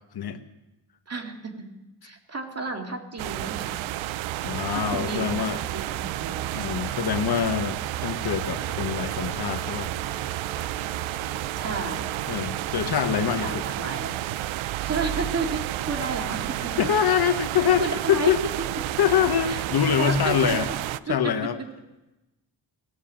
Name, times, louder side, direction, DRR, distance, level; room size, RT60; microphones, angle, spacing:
voice 1, 1.1-1.7 2.0-3.8 4.7-5.3 5.7-6.6 11.6-12.1 13.4-14.2 14.8-16.7 17.8-18.3 19.5-19.6 20.0-20.6 21.1-21.3, right 3 dB, 35° right, 3 dB, 2.3 m, -32 dB
sound 1, 3.2-21.0, right 14 dB, 85° right, 0.6 m, -31 dB
voice 2, 4.4-5.6 6.5-9.9 12.3-13.6 16.8-17.8 18.1-18.4 19.0-20.7 21.1-21.6, left 8 dB, 55° left, 9 dB, 1.1 m, -24 dB
Telephone, 8.5-13.7, left 4 dB, 60° right, 3.0 m, -47 dB
18.0 x 8.2 x 7.5 m, 0.99 s
cardioid pair, 100°, 46 cm